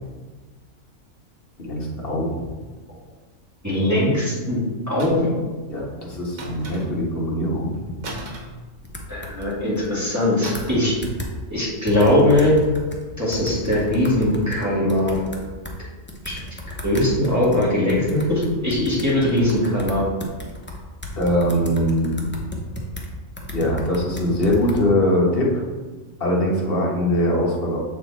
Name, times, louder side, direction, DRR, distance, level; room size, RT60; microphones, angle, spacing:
voice 1, 1.6-2.5 5.7-7.9 21.2-22.1 23.5-25.6 26.2-27.8, equal, 45° left, -3 dB, 1.6 m, -22 dB
voice 2, 3.6-4.6 4.9-5.4 9.1-10.9 11.5-12.6 13.2-15.2 16.2-16.3 16.8-20.1, left 1 dB, 10° right, -9 dB, 2.1 m, -20 dB
sound 1, 5.0-5.4 6.4-7.2 8.0-9.2 10.4-10.9 11.2-11.4, right 1 dB, 80° right, 1.5 m, -36 dB
sound 2, 8.8-9.9 10.2-10.3 10.5-10.8 11.0-11.3 11.9-13.0 13.3-15.8 16.1-23.1 23.4-24.8, left 1 dB, 10° left, 0.6 m, -34 dB
7.3 x 4.3 x 4.1 m, 1.3 s
omnidirectional pair, 1.4 m